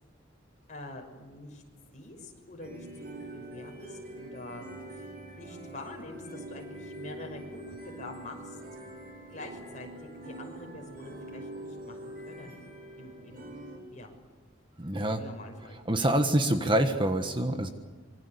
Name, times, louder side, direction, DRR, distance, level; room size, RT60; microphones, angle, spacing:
voice 1, 0.7-1.6 1.9-5.0 5.4-8.6 9.3-12.6 13.0-13.5 13.9-14.1 15.1-15.8, left 2 dB, 40° left, 2 dB, 6.0 m, -45 dB
sound 1, 2.6-13.8, right 1 dB, 50° right, 7.6 m, -44 dB
voice 2, 14.8-15.2 15.9-17.7, right 1 dB, 25° right, 6 dB, 1.5 m, -26 dB
26.0 x 24.0 x 8.4 m, 1.3 s
head